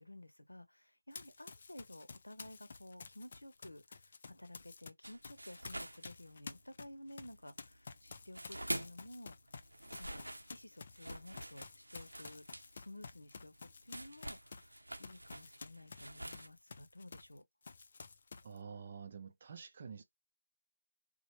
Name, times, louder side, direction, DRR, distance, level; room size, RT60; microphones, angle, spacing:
voice 1, 0.0-9.3 10.0-10.2 10.5-12.4 12.7-13.5 13.8-17.4, left 1 dB, 85° left, 0.6 m, -53 dB
Run, 1.1-4.9 5.2-17.4 17.6-18.6, left 4 dB, 40° left, 0.4 m, -52 dB
sound 1, 5.0-6.8 7.1-9.1 9.5-16.5, right 1 dB, 85° right, 0.6 m, -46 dB
voice 2, 18.4-20.0, right 6 dB, 35° right, 0.5 m, -48 dB
3.0 x 2.0 x 3.0 m
figure-of-eight pair, 160°, 0 cm